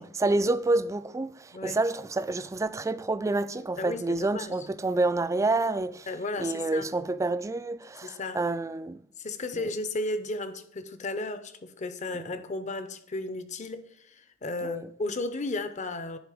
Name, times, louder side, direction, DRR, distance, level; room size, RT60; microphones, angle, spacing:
voice 1, 0.0-6.1 6.4-9.0 9.5-9.7 12.1-12.3 14.6-14.9, right 2 dB, 15° right, 0.3 m, -28 dB
voice 2, 3.8-4.5 6.1-6.9 8.0-8.4 9.2-16.2, left 2 dB, 35° left, 0.7 m, -34 dB
10.5 x 3.9 x 4.9 m
head